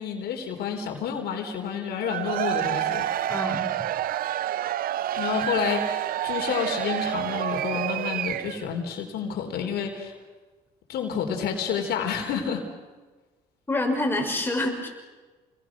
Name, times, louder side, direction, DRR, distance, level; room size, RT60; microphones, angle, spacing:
voice 1, 0.0-3.1 5.2-10.1 10.9-12.6, left 7 dB, 70° left, 3 dB, 3.9 m, -29 dB
Cheering / Crowd, 2.0-8.7, right 12 dB, 60° right, 0.7 m, -28 dB
voice 2, 3.3-3.7 13.7-14.9, left 2 dB, 10° left, 1 dB, 5.7 m, -26 dB
29.5 x 21.0 x 6.2 m, 1.3 s
cardioid pair, 110°, 17 cm